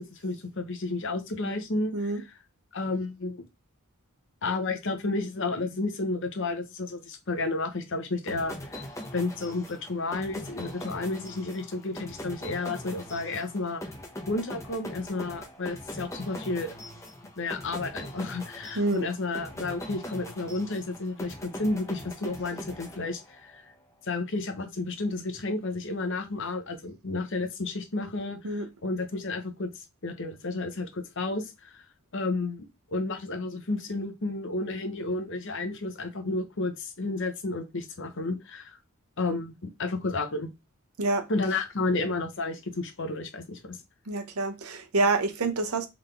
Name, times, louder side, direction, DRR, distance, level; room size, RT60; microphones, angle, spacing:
voice 1, 0.0-2.1 2.7-3.4 4.4-8.8 9.1-13.8 14.3-16.7 17.4-23.6 24.0-29.7 30.0-31.8 32.1-38.8 39.2-40.5 41.3-43.8, left 3 dB, 60° left, 0.9 m, -31 dB
sound 1, 8.3-23.6, left 1 dB, 15° left, 0.7 m, -41 dB
voice 2, 18.7-19.1 28.4-28.7 41.0-41.3 44.1-45.9, right 3 dB, 80° right, 0.9 m, -27 dB
3.9 x 3.6 x 3.3 m
head